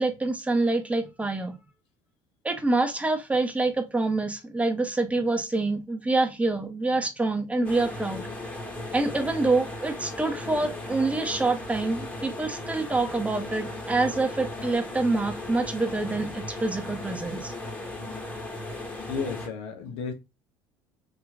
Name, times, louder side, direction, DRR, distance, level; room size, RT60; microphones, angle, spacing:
voice 1, 0.0-1.5 2.4-8.3 8.9-17.5, right 2 dB, 10° right, 0.9 m, -26 dB
sound 1, 7.6-19.5, left 2 dB, 15° left, 1.3 m, -36 dB
voice 2, 19.1-20.1, left 5 dB, 65° left, 1.0 m, -33 dB
3.5 x 2.9 x 2.2 m
hypercardioid pair, 70°, 11 cm